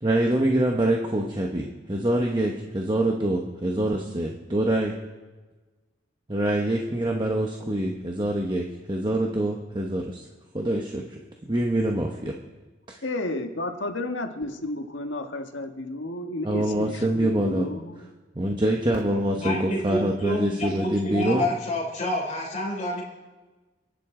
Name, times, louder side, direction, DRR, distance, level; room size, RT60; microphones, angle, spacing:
voice 1, 0.0-4.9 6.3-10.2 10.5-11.2 11.5-12.4 16.4-17.7 18.3-21.4, right 1 dB, 25° right, 1 dB, 1.1 m, -25 dB
voice 2, 13.0-18.1, left 2 dB, 75° left, 5 dB, 1.5 m, -32 dB
voice 3, 19.4-23.0, left 1 dB, 35° left, -1 dB, 3.3 m, -28 dB
28.5 x 10.5 x 3.8 m, 1.2 s
head